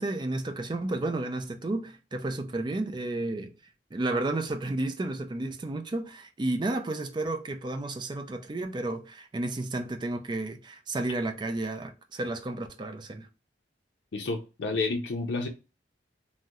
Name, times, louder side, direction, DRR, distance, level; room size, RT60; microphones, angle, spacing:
voice 1, 0.0-3.5 3.9-13.3, right 2 dB, 25° right, 0.4 m, -32 dB
voice 2, 14.1-15.5, left 3 dB, 80° left, 0.5 m, -30 dB
2.8 x 2.1 x 3.5 m
head